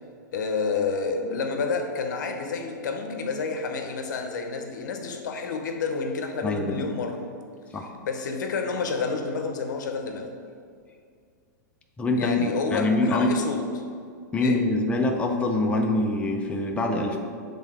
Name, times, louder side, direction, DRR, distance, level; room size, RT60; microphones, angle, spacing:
voice 1, 0.3-7.3 8.0-10.3 12.2-13.6 14.4-14.6, left 4 dB, 75° left, 4 dB, 0.8 m, -29 dB
voice 2, 6.4-6.8 7.7-7.9 12.0-13.3 14.3-17.2, left 2 dB, 10° left, 2 dB, 0.5 m, -24 dB
7.7 x 3.6 x 3.6 m, 2.2 s
hypercardioid pair, 125°, 10 cm